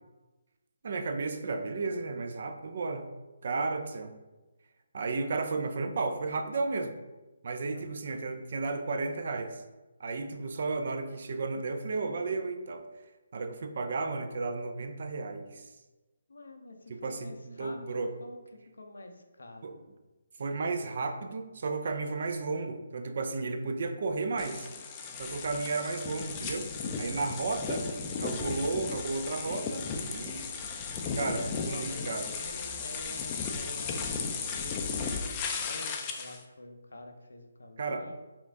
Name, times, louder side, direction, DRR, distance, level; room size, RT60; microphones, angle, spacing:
voice 1, 0.8-3.1 3.4-4.1 4.9-7.0 7.4-9.6 10.0-12.9 13.3-15.6 16.9-18.1 19.6-19.8 20.4-24.7 25.2-26.7 27.0-27.9 28.2-30.4 31.1-32.3 37.8-38.1, right 3 dB, 55° right, 7 dB, 0.4 m, -33 dB
voice 2, 16.3-18.4 18.8-19.6 31.3-38.2, left 2 dB, 85° left, 5 dB, 0.6 m, -47 dB
sound 1, 24.4-36.4, left 5 dB, 25° left, 0.4 m, -35 dB
4.2 x 2.4 x 3.7 m, 1.1 s
hypercardioid pair, 155°, 0 cm